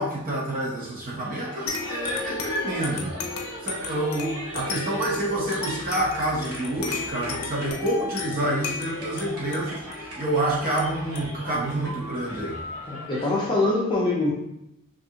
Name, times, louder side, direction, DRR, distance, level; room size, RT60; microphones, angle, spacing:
voice 1, 0.0-3.2 3.6-12.6, right 1 dB, 40° right, -4 dB, 0.8 m, -28 dB
sound 1, 1.2-13.3, equal, 85° right, 1.1 m, -39 dB
sound 2, 1.7-12.7, left 4 dB, 80° left, 0.5 m, -36 dB
voice 2, 12.9-14.3, left 2 dB, 20° left, -3 dB, 0.6 m, -23 dB
3.2 x 2.5 x 2.8 m, 0.84 s
head